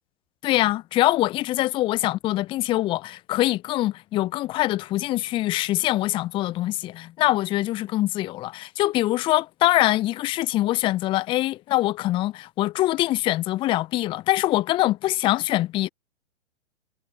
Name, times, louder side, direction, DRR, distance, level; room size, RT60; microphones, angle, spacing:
voice 1, 0.4-15.9, left 16 dB, 15° left, 0.7 m, -24 dB
figure-of-eight pair, 115°, 37 cm